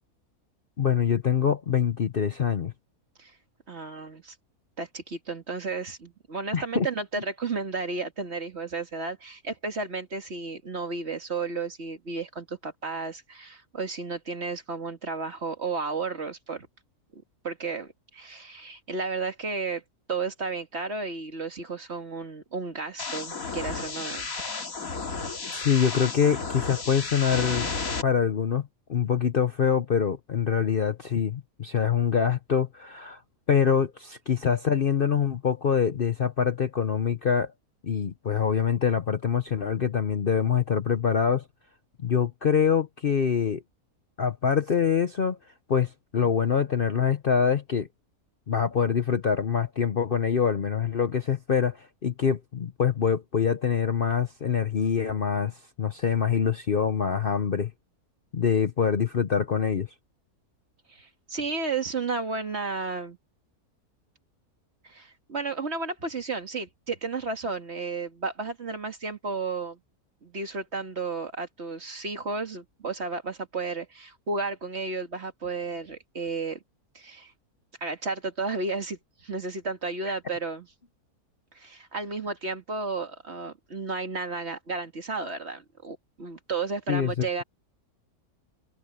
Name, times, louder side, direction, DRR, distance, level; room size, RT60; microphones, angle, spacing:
voice 1, 0.8-2.7 6.5-6.9 25.5-27.7 28.0-33.2 33.5-37.5 37.8-41.4 42.0-43.6 44.2-45.4 45.7-47.9 48.5-57.7 58.3-59.9 86.9-87.4, left 7 dB, 45° left, 0.8 m, -25 dB
voice 2, 3.7-4.3 4.8-16.7 17.4-19.8 20.1-24.3 60.9-63.2 64.8-69.8 70.2-76.6 76.9-77.3 77.8-80.7 81.5-87.4, right 4 dB, 45° right, 2.3 m, -33 dB
sound 1, 23.0-28.0, left 4 dB, 65° left, 2.7 m, -33 dB
omnidirectional pair, 1.6 m